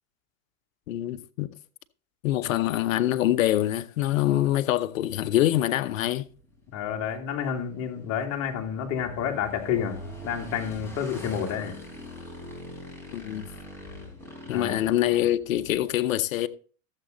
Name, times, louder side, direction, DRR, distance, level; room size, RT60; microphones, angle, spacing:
voice 1, 0.9-1.5 2.2-6.3 13.1-13.5 14.5-16.5, left 13 dB, 80° left, 0.9 m, -25 dB
Motorcycle / Engine, 6.3-15.9, left 1 dB, 5° left, 4.1 m, -44 dB
voice 2, 6.7-11.8 14.5-14.7, left 8 dB, 40° left, 2.3 m, -30 dB
12.5 x 7.5 x 3.8 m
hypercardioid pair, 120°, 39 cm